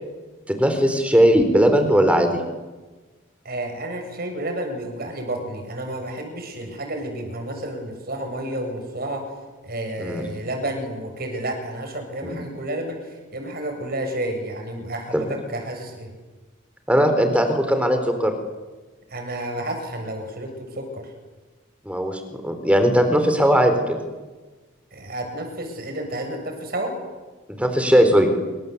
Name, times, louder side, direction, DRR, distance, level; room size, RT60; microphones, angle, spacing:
voice 1, 0.5-2.4 10.0-10.3 12.2-12.4 15.1-15.2 16.9-18.3 21.9-24.0 27.5-28.3, equal, 5° right, 7 dB, 4.2 m, -18 dB
voice 2, 3.4-9.2 9.6-16.1 19.1-21.1 24.9-26.9, right 1 dB, 50° right, 4 dB, 7.5 m, -31 dB
27.0 x 26.0 x 8.4 m, 1.2 s
head